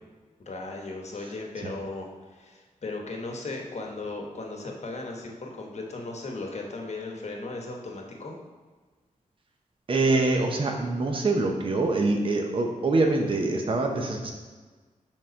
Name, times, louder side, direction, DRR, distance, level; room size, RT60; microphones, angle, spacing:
voice 1, 0.5-8.4, left 2 dB, 55° left, 1 dB, 1.0 m, -36 dB
voice 2, 9.9-14.3, right 2 dB, 40° right, 2 dB, 0.6 m, -24 dB
5.2 x 3.6 x 5.1 m, 1.4 s
wide cardioid pair, 100°, 14 cm